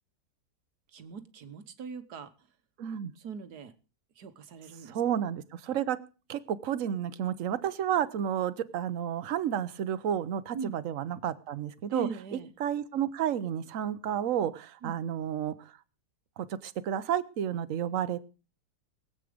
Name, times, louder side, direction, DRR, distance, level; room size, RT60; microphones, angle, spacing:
voice 1, 0.9-2.3 3.2-3.7 4.2-5.0 10.5-10.8 11.9-12.5 14.8-15.0, right 6 dB, 70° right, 10 dB, 1.7 m, -40 dB
voice 2, 2.8-3.1 4.9-6.0 6.3-15.5 16.4-18.2, right 9 dB, 55° right, 14 dB, 1.2 m, -31 dB
20.5 x 8.3 x 5.0 m, 0.34 s
omnidirectional pair, 1.8 m